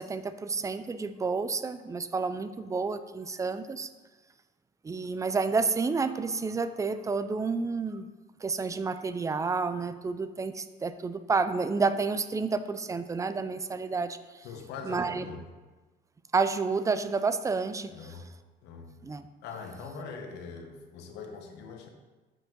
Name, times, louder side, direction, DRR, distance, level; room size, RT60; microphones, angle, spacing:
voice 1, 0.0-3.9 4.8-8.1 8.4-14.4 14.8-15.2 16.3-18.2 19.0-19.3, right 4 dB, 20° right, 11 dB, 0.4 m, -30 dB
voice 2, 14.4-15.4 17.9-18.3 18.6-18.9 19.4-21.9, left 5 dB, 85° left, 3 dB, 1.0 m, -42 dB
7.6 x 5.1 x 3.7 m, 1.2 s
cardioid pair, 110°, 17 cm